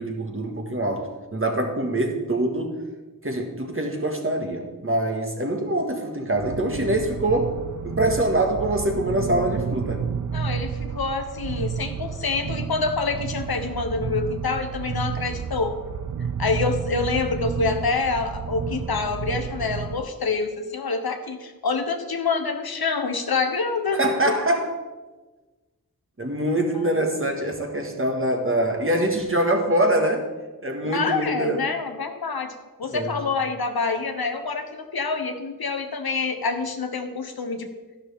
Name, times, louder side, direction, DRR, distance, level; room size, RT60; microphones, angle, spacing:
voice 1, 0.0-2.8 3.2-7.6 7.8-10.0 23.9-24.7 26.2-30.3 30.6-31.6 32.9-33.2, right 1 dB, 35° right, 3 dB, 1.8 m, -24 dB
sound 1, 6.3-20.0, right 7 dB, 55° right, 0.6 m, -31 dB
voice 2, 10.3-15.8 16.4-24.3 26.7-26.9 30.9-32.5 32.8-37.7, left 4 dB, 90° left, 6 dB, 1.1 m, -26 dB
11.5 x 11.0 x 3.6 m, 1.2 s
wide cardioid pair, 50°, 36 cm